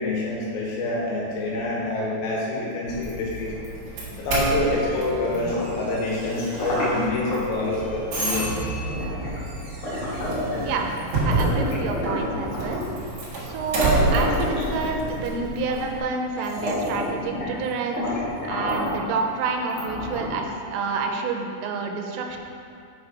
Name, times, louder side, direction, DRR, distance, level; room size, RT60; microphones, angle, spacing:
voice 1, 0.0-3.5 4.1-8.5 12.8-12.9, left 2 dB, 90° left, -4 dB, 4.1 m, -26 dB
Doorbell, 2.9-16.0, right 2 dB, 60° right, 1.8 m, -30 dB
sound 1, 5.3-7.4 8.3-8.5 8.9-10.9 11.3-12.9 13.5-13.6 13.8-15.2 15.9-16.0 16.4-17.6 17.9-19.1 19.7-20.5, left 1 dB, 55° left, 1.8 m, -29 dB
voice 2, 11.2-12.8 13.4-18.1 18.4-22.4, right 4 dB, 85° right, 3 dB, 3.2 m, -28 dB
7.9 x 5.2 x 5.1 m, 2.4 s
omnidirectional pair, 5.8 m